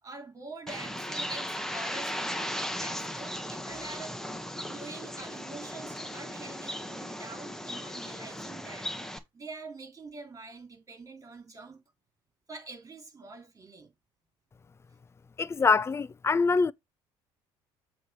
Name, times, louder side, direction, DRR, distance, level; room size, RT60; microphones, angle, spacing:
voice 1, 0.0-4.3 4.6-11.8 12.5-13.9, right 3 dB, 25° right, 3.2 m, -45 dB
Bird, 0.7-9.2, equal, 5° left, 1.2 m, -37 dB
voice 2, 15.4-16.7, left 4 dB, 20° left, 0.4 m, -24 dB
7.7 x 3.1 x 5.6 m
supercardioid pair, 75°, 12 cm